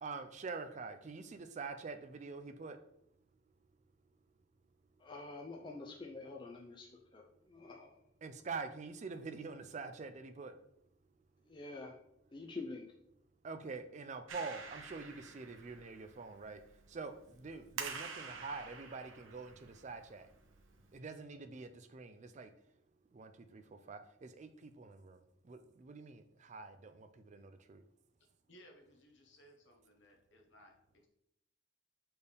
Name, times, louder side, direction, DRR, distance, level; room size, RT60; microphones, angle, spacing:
voice 1, 0.0-2.8 8.2-10.5 13.4-16.6 16.9-20.3 20.9-22.5 23.1-23.6 23.9-25.2 25.4-27.8, right 4 dB, 35° right, 9 dB, 0.4 m, -46 dB
voice 2, 5.0-8.0 11.5-12.0 12.3-12.9, left 3 dB, 25° left, 1 dB, 0.4 m, -47 dB
Clapping, 14.3-21.0, right 5 dB, 75° right, 0.9 m, -49 dB
voice 3, 28.5-31.1, equal, 60° left, 2 dB, 1.1 m, -62 dB
6.7 x 4.4 x 3.4 m, 0.77 s
head